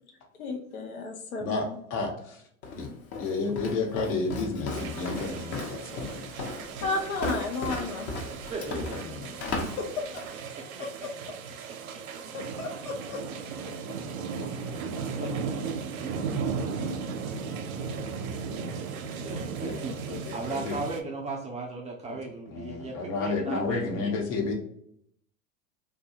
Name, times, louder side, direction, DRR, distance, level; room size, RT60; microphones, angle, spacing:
voice 1, 0.4-1.8 6.8-8.1 9.8-10.2 12.3-13.2 13.6-13.7 23.5-23.6, left 3 dB, 90° left, 2 dB, 0.7 m, -33 dB
voice 2, 1.4-2.4 2.7-2.9 3.2-6.4 8.7-9.7 13.1-13.2 19.6-19.8 20.1-20.8 22.0-22.1 22.5-24.5, left 3 dB, 65° left, 0 dB, 1.1 m, -32 dB
Walk footsteps, 2.6-10.4, left 2 dB, 35° left, 0.7 m, -36 dB
sound 1, 4.7-21.0, right 5 dB, 75° right, 0.6 m, -36 dB
voice 3, 8.3-9.2 15.2-16.1 19.2-20.0 20.3-24.1, right 3 dB, 20° right, 0 dB, 0.4 m, -37 dB
2.6 x 2.3 x 2.8 m, 0.69 s
hypercardioid pair, 95°, 42 cm